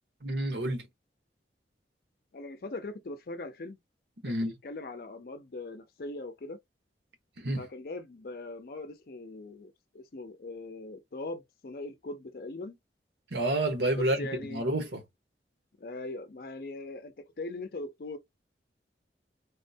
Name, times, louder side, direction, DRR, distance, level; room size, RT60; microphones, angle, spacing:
voice 1, 0.2-0.9 4.2-4.5 7.4-7.7 13.3-15.0, right 1 dB, 75° right, 1.0 m, -29 dB
voice 2, 2.3-3.8 4.3-6.6 7.6-12.8 14.0-14.6 15.8-18.2, left 2 dB, 55° left, 0.5 m, -40 dB
3.5 x 2.2 x 2.6 m
head